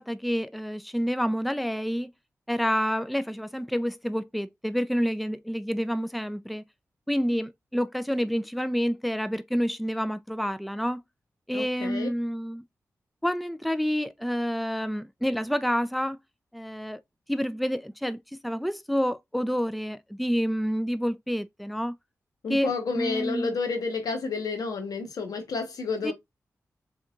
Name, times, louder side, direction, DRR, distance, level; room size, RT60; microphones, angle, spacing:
voice 1, 0.0-2.1 2.5-6.6 7.1-11.0 11.5-12.6 13.2-16.2 16.5-17.0 17.3-21.9 22.5-23.5 26.0-26.1, equal, ahead, 0.4 m, -28 dB
voice 2, 11.5-12.1 22.4-26.1, left 4 dB, 85° left, 1.2 m, -30 dB
4.2 x 3.5 x 2.4 m
cardioid pair, 50°, 6 cm